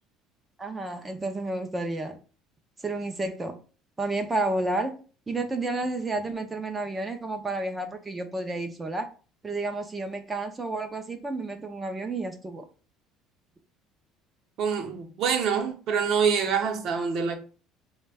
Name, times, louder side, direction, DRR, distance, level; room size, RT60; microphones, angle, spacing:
voice 1, 0.6-2.2 2.8-3.6 4.0-5.0 5.3-9.1 9.4-12.6, right 2 dB, 15° right, 0.3 m, -31 dB
voice 2, 14.6-17.4, right 6 dB, 45° right, 0.7 m, -26 dB
4.8 x 2.1 x 3.3 m
cardioid pair, 175°, 0 cm